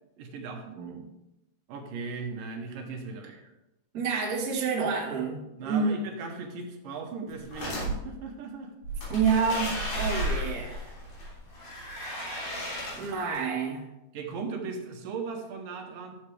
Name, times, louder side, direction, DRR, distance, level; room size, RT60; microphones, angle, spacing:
voice 1, 0.2-0.7 1.7-3.4 5.6-8.7 14.1-16.2, right 4 dB, 75° right, 3 dB, 2.6 m, -38 dB
voice 2, 0.8-1.1 3.9-6.0 9.1-10.9 13.0-13.8, right 5 dB, 40° right, -1 dB, 1.4 m, -28 dB
sound 1, 7.3-7.9 8.8-13.4, equal, 85° left, 5.2 m, -34 dB
13.5 x 6.9 x 3.3 m, 0.92 s
omnidirectional pair, 4.0 m